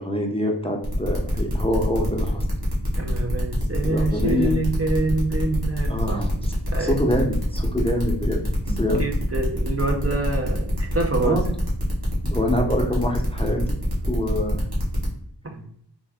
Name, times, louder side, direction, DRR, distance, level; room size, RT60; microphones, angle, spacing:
voice 1, 0.0-2.6 3.8-4.5 5.9-6.3 6.8-8.4 8.8-9.0 11.2-11.4 12.2-13.6 14.1-14.7, left 1 dB, 15° left, 1 dB, 0.6 m, -25 dB
sound 1, 0.8-15.1, left 1 dB, 60° right, 1.5 m, -28 dB
voice 2, 3.0-6.2 6.7-7.0 8.7-11.4 15.4-15.6, right 2 dB, 35° right, 2 dB, 0.6 m, -26 dB
3.5 x 2.6 x 3.5 m, 0.67 s
wide cardioid pair, 45°, 42 cm